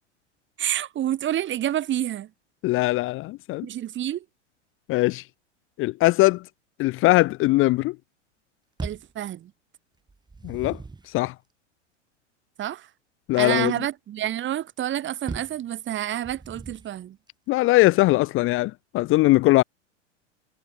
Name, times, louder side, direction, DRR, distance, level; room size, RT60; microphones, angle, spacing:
voice 1, 0.6-2.3 3.6-4.2 8.8-9.5 12.6-12.9 13.3-17.2, right 12 dB, 30° right, 3.4 m, -28 dB
voice 2, 2.6-3.7 4.9-5.2 5.8-6.4 6.8-8.0 10.4-10.8 11.1-11.3 13.3-13.7 17.5-19.6, left 19 dB, 35° left, 0.8 m, -20 dB
sound 1, 8.8-9.2 10.1-11.1 15.3-15.6 16.2-17.0, right 3 dB, 10° right, 6.1 m, -37 dB
hypercardioid pair, 95°, 36 cm